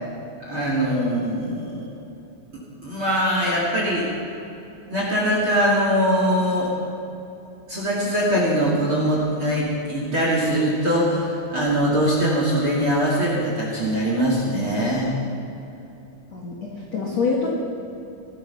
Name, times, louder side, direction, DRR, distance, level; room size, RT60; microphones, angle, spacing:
voice 1, 0.5-1.9 2.8-4.0 4.9-6.7 7.7-15.1, equal, 35° right, -4 dB, 2.4 m, -22 dB
voice 2, 16.3-17.5, left 4 dB, 55° left, -3 dB, 1.9 m, -25 dB
19.5 x 13.0 x 5.8 m, 2.9 s
omnidirectional pair, 6.0 m